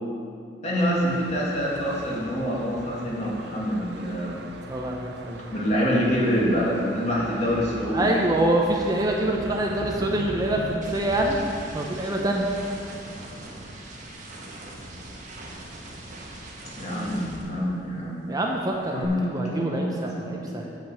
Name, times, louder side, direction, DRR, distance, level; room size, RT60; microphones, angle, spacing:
voice 1, 0.6-4.4 5.5-8.1 16.8-18.4 18.9-20.7, equal, 40° left, -5 dB, 1.9 m, -26 dB
Thunder, 0.7-10.8, right 2 dB, 65° right, 0.6 m, -40 dB
sound 1, 1.7-2.0 2.2-6.6 6.9-18.2 18.4-19.1, right 1 dB, 45° right, 1.2 m, -43 dB
voice 2, 4.7-5.4 7.9-11.4 11.7-12.5 18.3-20.7, right 1 dB, 20° right, 0 dB, 0.6 m, -25 dB
8.1 x 5.1 x 7.3 m, 2.3 s
head